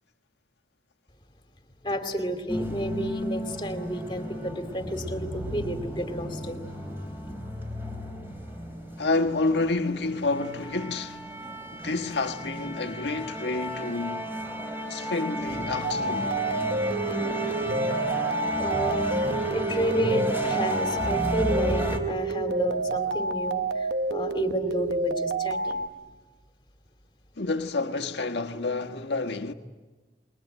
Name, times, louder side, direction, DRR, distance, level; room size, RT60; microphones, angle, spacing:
voice 1, 1.8-7.3 18.6-19.2 19.5-25.8, equal, 25° left, 2.5 m, -31 dB
sound 1, 2.5-22.0, equal, 10° right, 3.9 m, -33 dB
voice 2, 9.0-11.2 11.7-14.3 14.9-16.3 27.4-29.5, left 3 dB, 75° left, 1.5 m, -29 dB
sound 2, 15.8-25.9, right 3 dB, 75° right, 0.9 m, -29 dB
29.0 x 22.0 x 9.2 m
head